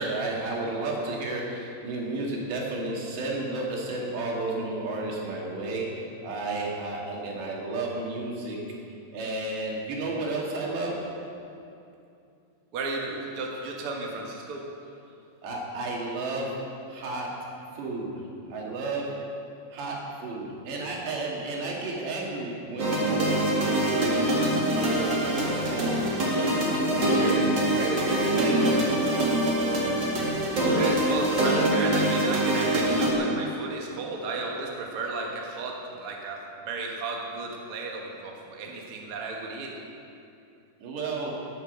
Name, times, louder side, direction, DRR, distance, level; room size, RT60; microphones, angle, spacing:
voice 1, 0.0-8.6 9.1-11.0 15.4-16.5 16.9-17.3 17.7-18.2 18.5-19.1 19.7-24.3 24.7-26.0 26.5-28.7 34.0-34.1 40.8-41.4, right 2 dB, 75° right, -2 dB, 4.5 m, -32 dB
voice 2, 12.7-14.7 30.5-39.8, right 3 dB, 50° right, 0 dB, 1.7 m, -34 dB
sound 1, 22.8-33.1, right 1 dB, 35° right, 2.2 m, -24 dB
18.5 x 9.1 x 6.7 m, 2.7 s
omnidirectional pair, 5.0 m